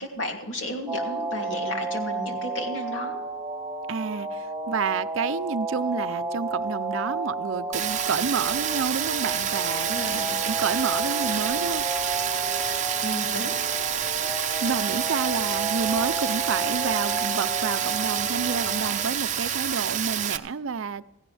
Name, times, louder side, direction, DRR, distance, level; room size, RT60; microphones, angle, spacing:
voice 1, 0.0-3.2 9.8-10.4 13.0-13.5, equal, 75° left, 1 dB, 2.7 m, -33 dB
sound 1, 0.9-19.0, right 2 dB, 10° right, 1.1 m, -32 dB
voice 2, 3.9-11.8 14.6-21.0, right 5 dB, 85° right, 14 dB, 0.5 m, -29 dB
Rain, 7.7-20.4, right 9 dB, 35° right, 0.7 m, -28 dB
17.0 x 16.0 x 3.4 m, 0.92 s
head